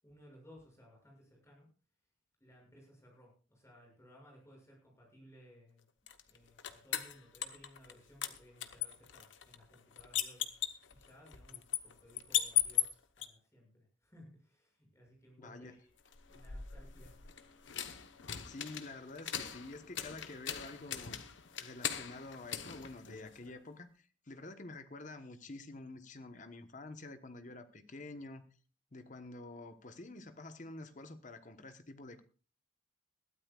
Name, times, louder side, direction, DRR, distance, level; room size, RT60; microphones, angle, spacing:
voice 1, 0.0-1.7 2.4-15.9 16.3-17.2, equal, 15° left, 6.5 m, -60 dB
sound 1, 6.1-7.9 8.2-13.3 16.1-23.6, left 11 dB, 65° left, 1.0 m, -39 dB
voice 2, 15.4-15.7 18.5-21.2 21.6-28.5 28.9-32.2, left 2 dB, 40° left, 1.1 m, -48 dB
21.0 x 13.0 x 2.4 m
head